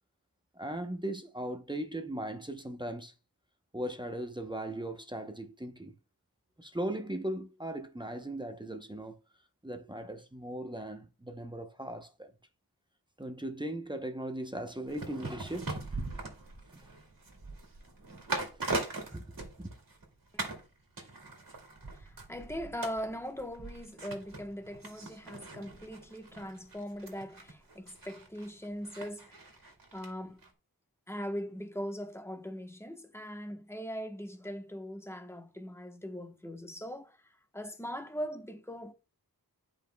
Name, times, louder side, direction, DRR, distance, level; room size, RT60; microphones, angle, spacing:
voice 1, 0.5-3.1 3.7-5.9 6.6-9.2 9.6-12.3 13.2-15.8 18.5-18.7 19.1-19.7, right 1 dB, 10° right, 0.8 m, -38 dB
sound 1, 14.9-20.0 20.4-20.7 21.0-30.1 30.4-30.5, right 2 dB, 60° right, 1.9 m, -41 dB
voice 2, 21.9-29.6 29.9-30.4 31.1-38.9, equal, 5° left, 1.0 m, -40 dB
10.0 x 5.2 x 2.2 m
wide cardioid pair, 65°, 37 cm